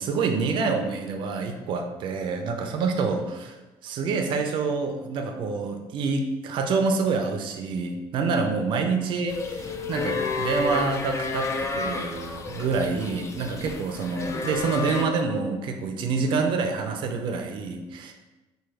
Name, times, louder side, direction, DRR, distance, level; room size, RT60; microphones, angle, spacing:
voice 1, 0.0-3.6 3.8-18.1, right 4 dB, 55° right, 4 dB, 0.4 m, -27 dB
sound 1, 9.3-15.0, left 4 dB, 30° left, 0.4 m, -31 dB
4.6 x 2.2 x 3.2 m, 1.1 s
cardioid pair, 130°, 10 cm